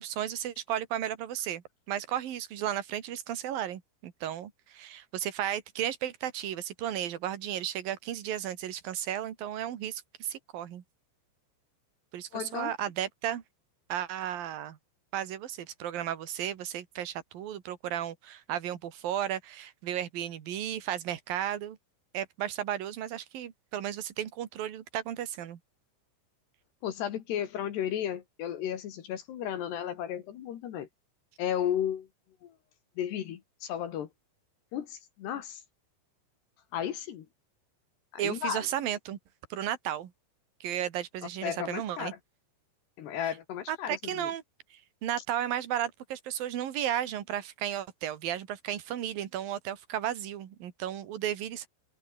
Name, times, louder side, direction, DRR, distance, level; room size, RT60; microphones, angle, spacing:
voice 1, 0.0-10.8 12.1-13.4 13.9-14.8 15.1-21.8 22.1-25.6 38.2-39.2 39.5-40.1 40.6-42.1 43.7-44.4 44.7-51.7, right 11 dB, 55° right, 3.1 m, -34 dB
voice 2, 12.3-12.7 26.8-30.9 31.4-32.1 32.4-32.5 33.0-34.1 34.7-35.6 36.7-37.3 38.1-38.7 41.4-42.2 43.0-44.3, left 10 dB, 60° left, 3.5 m, -34 dB
omnidirectional pair, 5.9 m